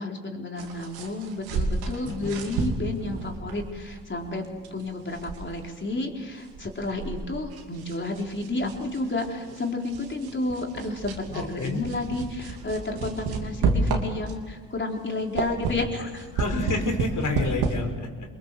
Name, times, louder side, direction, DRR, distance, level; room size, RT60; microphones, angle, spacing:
voice 1, 0.0-16.3, left 2 dB, 30° left, 1 dB, 4.2 m, -31 dB
sound 1, 0.6-14.5 14.9-17.7, right 4 dB, 85° right, 2.9 m, -32 dB
voice 2, 11.3-11.8 16.3-18.3, left 3 dB, 55° left, 4 dB, 5.2 m, -29 dB
24.0 x 21.5 x 7.0 m, 1.5 s
supercardioid pair, 65°, 37 cm